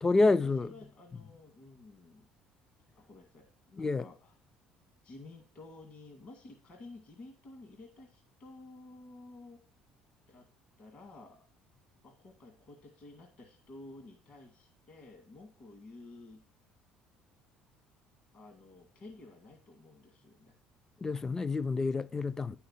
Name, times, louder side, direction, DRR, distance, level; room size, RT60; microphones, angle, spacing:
voice 1, 0.0-0.7 3.8-4.1 21.0-22.6, left 3 dB, 20° left, 0.4 m, -28 dB
voice 2, 0.6-2.3 3.0-4.4 5.0-9.6 10.3-10.5 10.8-11.5 12.0-16.4 18.3-20.6, left 2 dB, 50° left, 1.8 m, -52 dB
10.0 x 5.7 x 7.2 m
cardioid pair, 125°, 3 cm